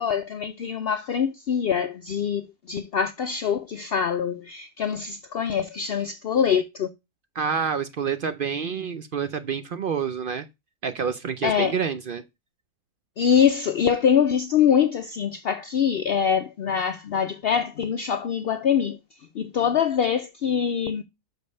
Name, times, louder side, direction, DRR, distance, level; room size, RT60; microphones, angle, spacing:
voice 1, 0.0-6.9 11.4-11.8 13.2-19.0 19.4-21.0, left 7 dB, 80° left, 0.5 m, -24 dB
voice 2, 7.4-10.5 10.8-12.2, right 6 dB, 70° right, 0.5 m, -28 dB
6.3 x 5.1 x 5.4 m
omnidirectional pair, 1.6 m